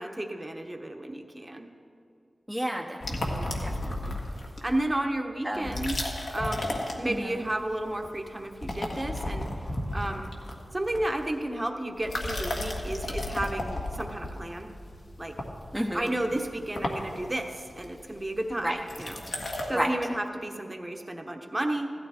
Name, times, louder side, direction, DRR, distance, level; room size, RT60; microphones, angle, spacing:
voice 1, 0.0-1.7 4.6-9.5 9.9-10.3 10.7-14.7 15.2-15.3 15.9-19.2 19.7-21.9, right 1 dB, 20° right, 3 dB, 1.1 m, -32 dB
voice 2, 2.5-4.2 5.4-5.8 7.1-7.3 15.7-16.1 18.6-18.8 19.7-19.9, equal, ahead, -1 dB, 0.9 m, -32 dB
sound 1, 3.0-4.8 5.6-7.5 7.8-8.2 8.5-11.4 11.9-19.7, left 1 dB, 75° left, 1.7 m, -34 dB
16.0 x 13.0 x 4.4 m, 2.5 s
wide cardioid pair, 85°, 0 cm